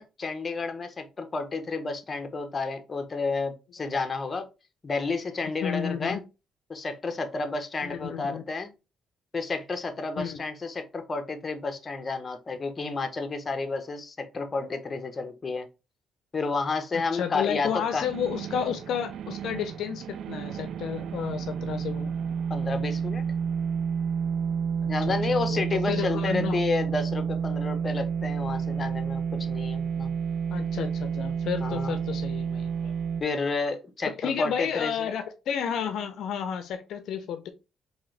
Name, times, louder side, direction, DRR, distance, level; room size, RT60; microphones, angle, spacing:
voice 1, 0.0-4.5 4.8-6.2 6.7-8.7 9.3-15.7 16.3-18.0 22.5-23.2 24.9-30.1 31.6-32.0 33.2-35.0, left 3 dB, 35° left, 0.8 m, -31 dB
voice 2, 5.4-6.2 7.8-8.4 10.2-10.4 17.1-22.1 25.1-26.6 30.5-32.9 34.2-37.5, left 8 dB, 75° left, 0.5 m, -32 dB
sound 1, 17.6-33.2, right 7 dB, 70° right, 0.3 m, -30 dB
3.7 x 2.7 x 3.2 m
cardioid pair, 90°, 0 cm